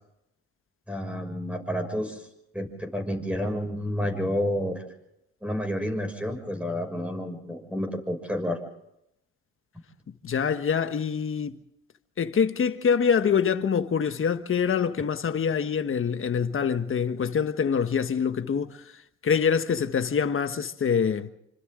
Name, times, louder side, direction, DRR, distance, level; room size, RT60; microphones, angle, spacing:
voice 1, 0.9-2.3 2.5-4.8 5.4-8.6, equal, 5° right, 6.4 m, -30 dB
voice 2, 10.2-11.5 12.2-18.8 19.2-21.3, left 7 dB, 45° left, 1.4 m, -25 dB
28.0 x 26.0 x 3.8 m
cardioid pair, 90°, 30 cm